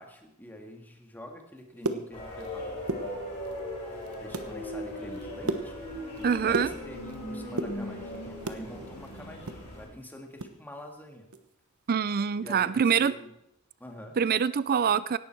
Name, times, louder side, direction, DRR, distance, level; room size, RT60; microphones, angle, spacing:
voice 1, 0.0-3.3 3.9-5.7 6.2-11.3 12.3-13.3 13.8-14.2, left 1 dB, 10° left, 2 dB, 1.9 m, -46 dB
sound 1, 1.6-2.5 2.8-3.6 4.0-4.5 4.9-7.2 7.5-8.7 9.0-10.6 10.8-10.9 11.3-11.5 11.9-12.1, right 2 dB, 75° right, 1.2 m, -34 dB
sound 2, 2.1-9.8, left 1 dB, 30° left, 7.0 m, -38 dB
voice 2, 6.2-6.7 11.9-13.2 14.2-15.2, right 7 dB, 45° right, 17 dB, 0.4 m, -25 dB
17.0 x 11.5 x 4.5 m, 0.81 s
head